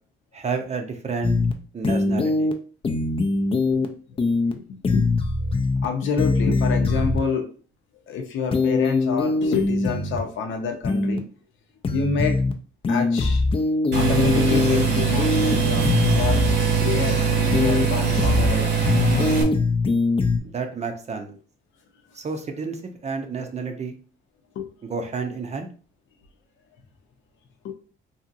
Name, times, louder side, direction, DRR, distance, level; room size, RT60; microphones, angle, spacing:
voice 1, 0.3-1.4 1.7-2.5 20.5-21.3 22.2-23.9 24.9-25.7, right 4 dB, 35° right, 5 dB, 0.6 m, -30 dB
sound 1, 1.2-1.5 1.8-2.5 2.8-3.8 4.2-4.5 4.8-5.8 6.2-7.2 8.5-10.2 10.8-11.2 11.8-12.5 12.8-14.8 15.2-16.5 17.5-17.8 18.2-18.5 18.8-20.4, left 3 dB, 30° left, 0.4 m, -22 dB
voice 2, 3.6-3.9 4.5-5.1 5.8-7.4 8.1-11.2 11.9-12.4 12.9-13.4 13.9-15.9 16.1-16.4 16.8-18.9 24.6-24.7 27.6-27.7, left 5 dB, 75° left, 4 dB, 0.7 m, -28 dB
sound 2, 13.9-19.4, right 6 dB, 60° right, 0.9 m, -22 dB
2.8 x 2.7 x 2.5 m, 0.39 s
cardioid pair, 90°, 20 cm